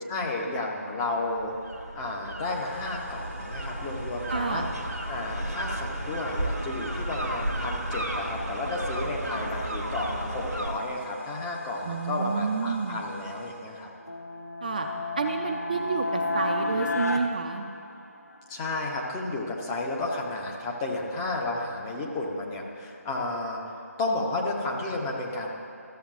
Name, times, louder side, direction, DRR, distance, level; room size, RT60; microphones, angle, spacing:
voice 1, 0.1-1.5 1.9-4.6 5.1-13.9 18.5-23.7 24.0-25.5, left 2 dB, 15° left, -2 dB, 0.6 m, -32 dB
sound 1, 1.4-10.7, right 1 dB, 85° right, 1.0 m, -33 dB
sound 2, 2.4-13.8, left 1 dB, 40° left, 1.8 m, -49 dB
voice 2, 4.3-4.7 11.8-13.1 14.6-14.9 15.2-17.7, right 4 dB, 30° right, 3 dB, 0.4 m, -29 dB
sound 3, 14.0-18.4, left 2 dB, 75° left, 0.7 m, -31 dB
13.5 x 7.0 x 2.4 m, 2.6 s
figure-of-eight pair, 150°, 9 cm